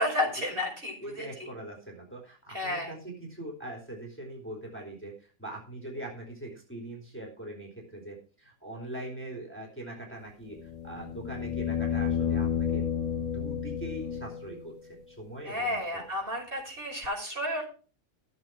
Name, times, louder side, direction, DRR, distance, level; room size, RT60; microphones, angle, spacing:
voice 1, 0.0-1.3 2.5-2.9 15.4-17.6, left 1 dB, 35° right, 0 dB, 5.8 m, -31 dB
voice 2, 1.0-12.9 13.3-16.0, right 1 dB, 10° left, -1 dB, 3.5 m, -42 dB
sound 1, 10.5-14.6 17.0-17.1, left 8 dB, 50° left, 3.3 m, -31 dB
14.0 x 8.2 x 4.6 m, 0.37 s
omnidirectional pair, 1.6 m